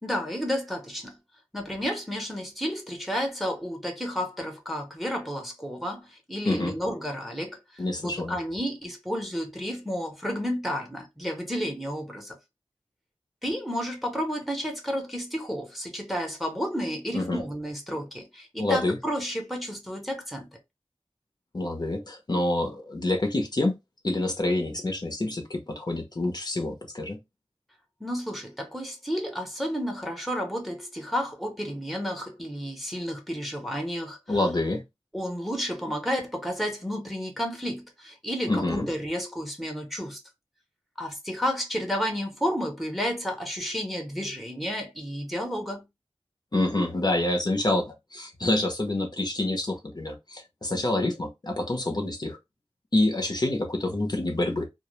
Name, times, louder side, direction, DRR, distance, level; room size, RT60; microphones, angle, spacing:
voice 1, 0.0-1.2 1.5-12.4 13.4-20.5 28.0-34.2 35.1-40.2 41.0-45.9, equal, ahead, 0.7 m, -31 dB
voice 2, 7.8-8.4 17.1-17.4 18.6-19.0 21.5-23.7 24.0-27.2 34.3-34.8 38.5-38.9 46.5-47.8 48.1-52.4 52.9-54.7, left 2 dB, 40° left, 0.6 m, -27 dB
2.1 x 2.0 x 3.0 m
wide cardioid pair, 60°, 10 cm